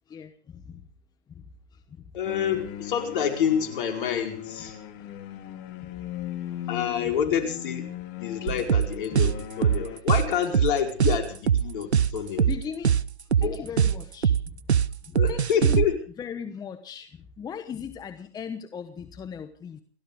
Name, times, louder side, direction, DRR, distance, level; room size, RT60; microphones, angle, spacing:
voice 1, 0.1-0.8 1.3-1.4 1.7-2.0 5.8-5.9 6.7-6.8 8.5-8.6 12.4-13.0 13.4-14.6 14.9-15.9 16.2-19.8, left 7 dB, 10° left, 10 dB, 1.1 m, -38 dB
voice 2, 2.1-4.8 6.7-7.8 8.2-12.5 13.4-13.6 15.1-15.9, left 8 dB, 50° left, 5 dB, 4.9 m, -28 dB
sound 1, 2.2-10.0, left 11 dB, 30° left, 2.9 m, -38 dB
sound 2, 8.5-15.8, right 8 dB, 85° right, 0.9 m, -22 dB
29.5 x 12.5 x 3.6 m, 0.43 s
hypercardioid pair, 130°, 32 cm